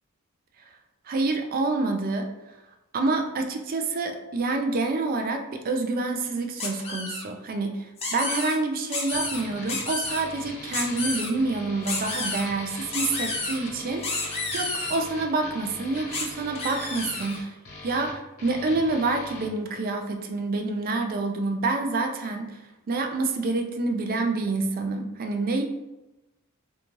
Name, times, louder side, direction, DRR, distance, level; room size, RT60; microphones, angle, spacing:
voice 1, 1.1-2.3 2.9-17.6 17.8-22.6 22.9-25.6, right 3 dB, 40° right, 4 dB, 0.3 m, -27 dB
sound 1, 6.6-7.2 8.0-8.5 8.9-9.4 9.7-10.2 10.7-11.3 11.9-12.5 12.9-13.6 14.0-15.0 16.1-16.2 16.6-17.4, left 3 dB, 25° left, 0.5 m, -30 dB
sound 2, 9.1-19.5, left 2 dB, 85° left, 1.1 m, -41 dB
2.6 x 2.3 x 3.0 m, 0.99 s
head